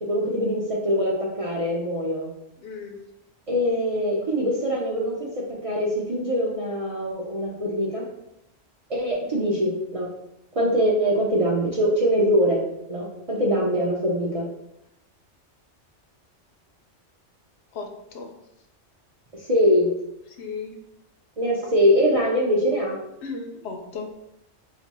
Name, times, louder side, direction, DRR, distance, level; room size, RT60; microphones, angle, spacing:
voice 1, 0.0-2.3 3.5-5.3 5.6-8.0 8.9-10.1 10.5-12.6 12.9-14.5 19.5-19.9 21.4-23.0, equal, 45° right, -4 dB, 0.4 m, -23 dB
voice 2, 2.6-3.0 17.7-18.3 20.3-20.8 23.2-24.1, left 4 dB, 75° left, 4 dB, 0.8 m, -35 dB
2.6 x 2.6 x 4.1 m, 0.83 s
omnidirectional pair, 1.2 m